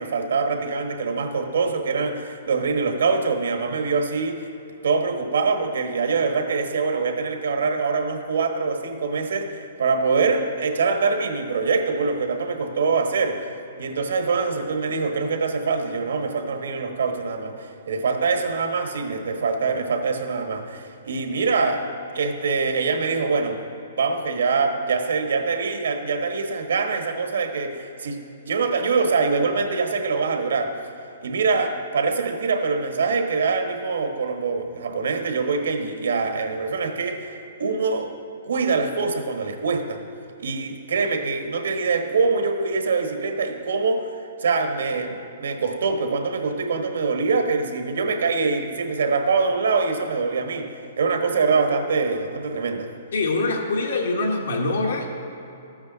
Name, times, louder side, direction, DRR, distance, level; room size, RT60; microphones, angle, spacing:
voice 1, 0.0-4.5 4.8-13.5 13.8-21.8 22.1-23.6 24.0-28.2 28.5-30.8 31.2-38.1 38.4-40.1 40.4-52.9, right 4 dB, 85° right, 5 dB, 1.2 m, -24 dB
voice 2, 53.1-55.1, left 2 dB, 80° left, 2 dB, 1.5 m, -24 dB
12.5 x 8.9 x 4.0 m, 2.9 s
hypercardioid pair, 160°, 0 cm